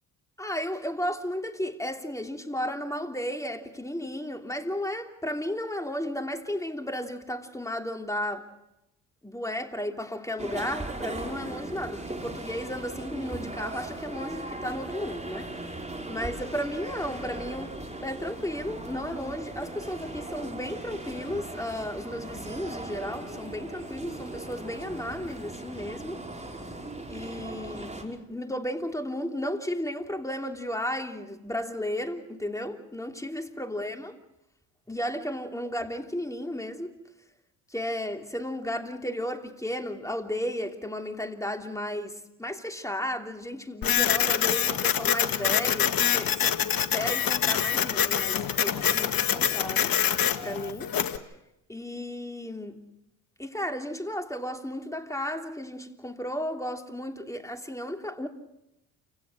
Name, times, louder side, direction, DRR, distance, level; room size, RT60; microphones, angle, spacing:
voice 1, 0.4-8.5 9.2-15.5 16.1-17.7 18.0-26.2 27.1-34.1 34.9-36.9 37.7-49.9 50.4-50.9 51.7-52.8 53.4-58.3, left 1 dB, 5° left, 3.1 m, -34 dB
sound 1, 10.4-28.0, right 2 dB, 15° right, 5.2 m, -38 dB
Printer, 43.8-51.2, left 9 dB, 50° left, 1.8 m, -25 dB
29.5 x 17.5 x 6.4 m
hypercardioid pair, 60°, 43 cm